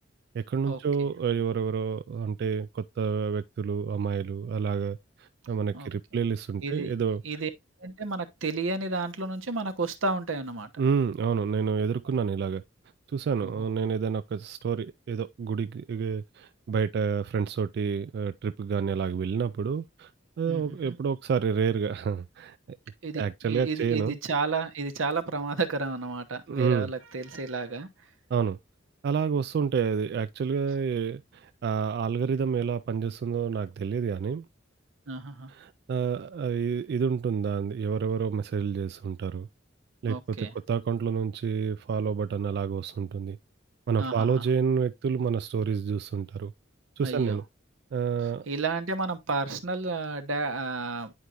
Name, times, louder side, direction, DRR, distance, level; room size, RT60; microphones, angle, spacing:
voice 1, 0.3-7.2 10.8-12.6 13.1-20.1 20.4-22.8 23.1-24.2 26.5-26.9 28.3-28.6 29.0-34.5 35.5-39.5 40.0-43.4 43.9-46.5 47.0-47.4 47.9-48.5, right 6 dB, 55° right, 0.3 m, -29 dB
voice 2, 6.6-6.9 7.2-7.5 7.8-10.7 13.4-13.6 20.5-21.0 23.0-27.9 35.1-35.5 40.1-40.5 44.0-44.4 47.0-47.4 48.5-51.1, right 3 dB, 85° right, 1.0 m, -32 dB
9.8 x 4.6 x 2.4 m
head